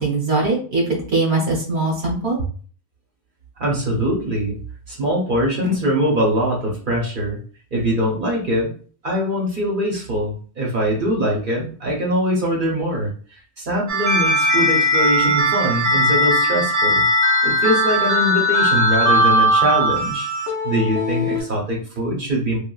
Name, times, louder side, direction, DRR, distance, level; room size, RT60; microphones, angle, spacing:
voice 1, 0.0-2.5, right 3 dB, 75° right, 0 dB, 1.2 m, -21 dB
voice 2, 3.6-4.6 4.9-7.4 7.7-8.7 9.0-17.0 17.4-20.3 20.6-22.6, equal, 55° right, -2 dB, 0.9 m, -22 dB
sound 1, 13.9-21.4, equal, 30° right, 0.3 m, -18 dB
3.1 x 2.3 x 2.3 m, 0.42 s
omnidirectional pair, 1.1 m